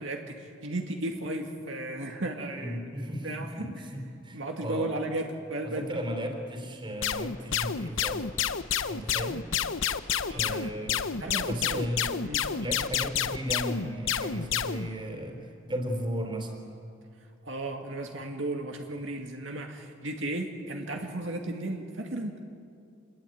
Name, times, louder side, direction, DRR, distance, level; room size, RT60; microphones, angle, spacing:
voice 1, 0.0-2.8 3.2-3.5 4.3-6.0 10.3-10.7 11.2-11.8 12.2-12.8 17.4-22.4, right 2 dB, 65° right, 2 dB, 2.1 m, -35 dB
voice 2, 2.5-4.9 5.6-8.3 8.8-9.4 10.3-12.1 12.6-16.5, equal, 25° right, 4 dB, 4.0 m, -35 dB
sound 1, 7.0-14.9, left 8 dB, 75° left, 0.9 m, -29 dB
27.0 x 21.5 x 9.4 m, 2.4 s
head